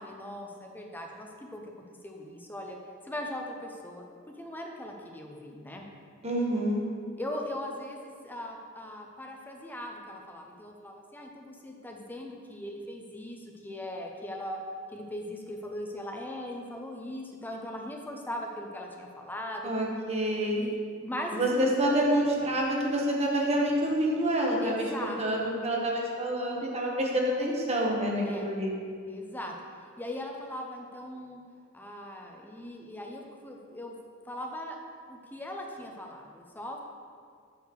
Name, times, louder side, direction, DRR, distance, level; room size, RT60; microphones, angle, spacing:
voice 1, 0.0-1.6 2.0-2.8 3.0-4.0 4.4-5.8 7.2-14.6 14.9-19.7 20.6-21.7 24.6-25.2 28.2-28.5 29.1-29.6 30.0-31.4 31.7-33.9 34.2-34.8 35.1-36.8, left 1 dB, 10° left, 1 dB, 0.8 m, -39 dB
voice 2, 6.2-6.8 19.6-20.6 21.3-24.9 25.2-28.8, right 1 dB, 30° right, -2 dB, 1.3 m, -27 dB
8.4 x 4.3 x 6.5 m, 2.2 s
head